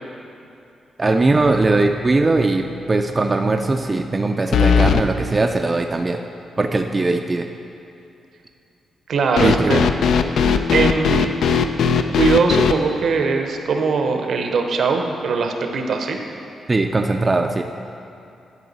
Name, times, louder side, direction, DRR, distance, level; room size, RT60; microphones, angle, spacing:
voice 1, 1.0-6.2 6.6-7.5 9.4-9.9 16.7-17.6, right 2 dB, 25° right, 4 dB, 0.3 m, -20 dB
sound 1, 1.4-1.9 2.2-2.3 4.5-5.1 9.4-12.8, left 6 dB, 75° left, 0.3 m, -18 dB
voice 2, 9.1-9.9 10.7-11.4 12.2-16.2, right 4 dB, 70° right, 4 dB, 0.7 m, -20 dB
11.0 x 4.7 x 4.0 m, 2.7 s
cardioid pair, 85°, 0 cm